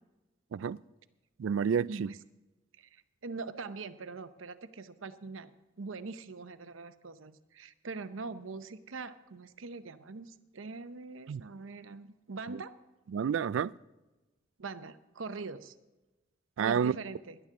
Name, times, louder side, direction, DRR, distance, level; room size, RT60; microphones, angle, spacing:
voice 1, 1.4-2.1 11.3-11.4 12.5-12.6 13.1-13.7 16.6-16.9, right 7 dB, 75° right, 0.3 m, -29 dB
voice 2, 2.8-5.5 5.8-12.7 14.6-15.8 16.6-17.4, right 4 dB, 90° right, 0.8 m, -43 dB
18.0 x 11.0 x 3.7 m
head